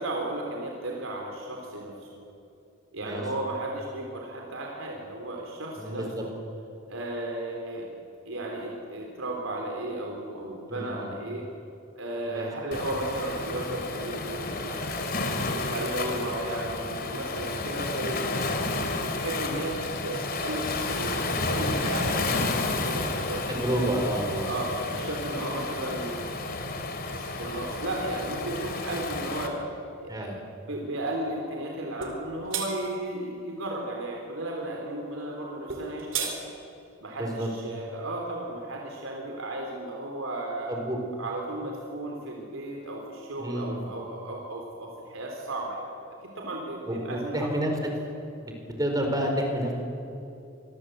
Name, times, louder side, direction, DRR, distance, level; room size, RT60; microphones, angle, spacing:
voice 1, 0.0-2.1 2.9-6.3 6.9-7.9 8.3-11.5 12.0-15.3 15.7-18.5 19.0-19.8 20.0-24.0 24.5-26.3 27.1-29.6 30.0-36.3 37.0-40.7 41.2-45.9 46.4-47.5, right 1 dB, 85° right, 0 dB, 3.7 m, -34 dB
voice 2, 5.8-6.2 10.7-11.1 12.3-12.7 16.1-16.3 23.5-24.5 30.1-30.4 37.2-37.5 40.7-41.0 43.4-43.9 46.9-47.7 48.4-49.7, right 1 dB, 20° right, 2 dB, 4.6 m, -30 dB
Waves surf, 12.7-29.5, left 2 dB, 50° left, 3.0 m, -31 dB
sound 1, 32.0-32.2 32.5-32.7 35.7-36.4, right 7 dB, 70° right, 4.0 m, -30 dB
25.5 x 22.0 x 8.1 m, 2.7 s
head